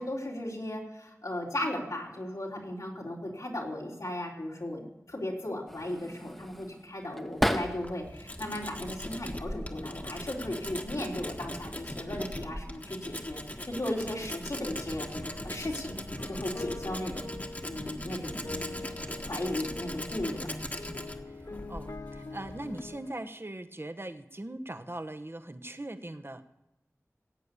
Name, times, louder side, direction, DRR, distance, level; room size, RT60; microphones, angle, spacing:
voice 1, 0.0-15.9 16.3-17.3 17.6-18.4 19.2-20.5, left 1 dB, 85° left, -3 dB, 3.7 m, -36 dB
sound 1, 5.7-8.2 8.6-9.4 10.4-10.7 11.0-11.8, equal, 5° left, 1.0 m, -35 dB
Tools, 7.6-23.0, left 1 dB, 30° left, 1.4 m, -40 dB
sound 2, 14.7-23.2, left 2 dB, 65° left, 0.8 m, -44 dB
voice 2, 21.7-26.4, right 1 dB, 40° right, 8 dB, 1.0 m, -40 dB
16.5 x 8.5 x 8.4 m, 0.94 s
wide cardioid pair, 40°, 6 cm